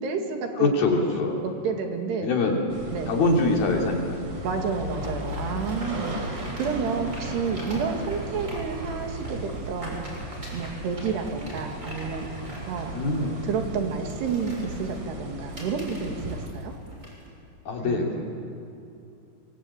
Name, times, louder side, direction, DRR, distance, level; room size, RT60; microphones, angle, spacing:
voice 1, 0.0-0.7 1.4-2.3 2.9-3.1 4.4-10.0 10.5-12.3 12.7-16.7 17.8-18.0, right 5 dB, 80° right, 4 dB, 4.3 m, -30 dB
voice 2, 0.6-1.3 2.2-2.6 3.1-4.2 12.9-13.3 17.7-18.2, left 3 dB, 65° left, 1 dB, 4.8 m, -23 dB
sound 1, 2.7-16.5, right 1 dB, 35° right, 3.8 m, -36 dB
sound 2, 5.0-17.3, equal, 15° right, 6.7 m, -43 dB
25.0 x 23.5 x 8.9 m, 2.6 s
omnidirectional pair, 4.8 m